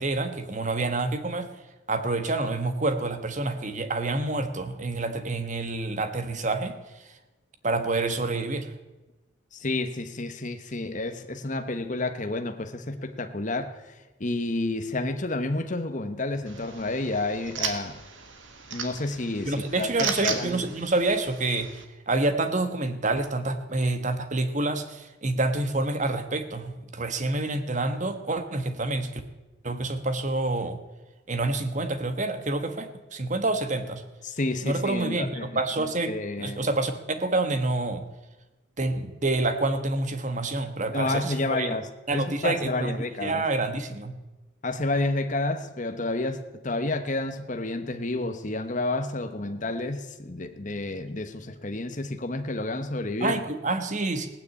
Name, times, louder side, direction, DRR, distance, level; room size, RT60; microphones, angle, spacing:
voice 1, 0.0-1.5 1.9-6.8 7.6-8.7 19.5-21.7 22.1-29.2 29.6-30.8 31.3-34.0 34.6-36.9 37.2-38.1 38.8-41.7 42.1-44.1 53.2-54.3, right 2 dB, 35° right, 1.3 m, -28 dB
voice 2, 9.5-13.7 14.2-18.0 18.7-20.6 34.2-36.7 40.9-43.4 44.6-53.4, left 2 dB, 40° left, 1.1 m, -30 dB
sound 1, 16.5-21.8, right 6 dB, 65° right, 1.8 m, -36 dB
17.0 x 9.5 x 8.4 m
head